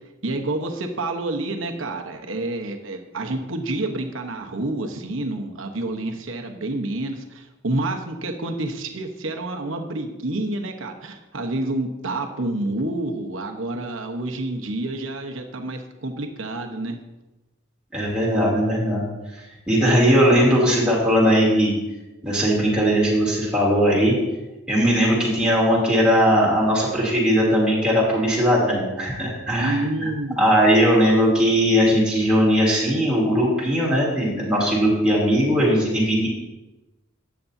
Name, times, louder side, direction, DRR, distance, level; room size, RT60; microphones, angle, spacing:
voice 1, 0.2-17.0 29.6-30.5, right 2 dB, 80° right, 4 dB, 1.1 m, -28 dB
voice 2, 17.9-19.1 19.3-21.7 22.2-24.1 24.7-30.1 30.4-36.3, equal, 5° right, -6 dB, 2.9 m, -19 dB
13.0 x 8.5 x 2.7 m, 1.0 s
head